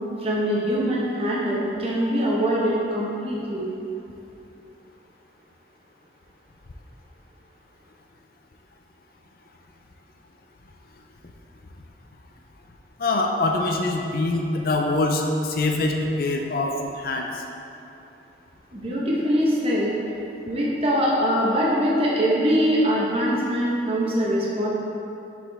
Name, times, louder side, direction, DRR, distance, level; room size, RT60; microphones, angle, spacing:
voice 1, 0.2-3.6 18.7-19.9 20.5-24.7, equal, 30° right, -5 dB, 1.0 m, -23 dB
voice 2, 13.0-17.3, left 2 dB, 50° left, 2 dB, 0.4 m, -24 dB
6.8 x 5.0 x 3.4 m, 2.8 s
head